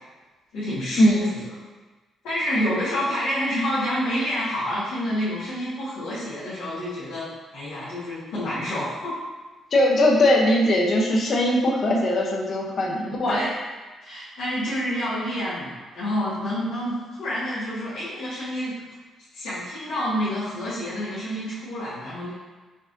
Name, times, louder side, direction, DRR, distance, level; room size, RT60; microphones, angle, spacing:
voice 1, 0.5-1.3 2.2-9.1 12.8-12.9 13.3-13.5 14.0-18.8 19.3-22.3, equal, 85° left, -13 dB, 1.4 m, -28 dB
voice 2, 9.7-13.4, left 1 dB, 50° left, -1 dB, 0.7 m, -20 dB
5.3 x 2.6 x 2.6 m, 1.3 s
cardioid pair, 90°, 0 cm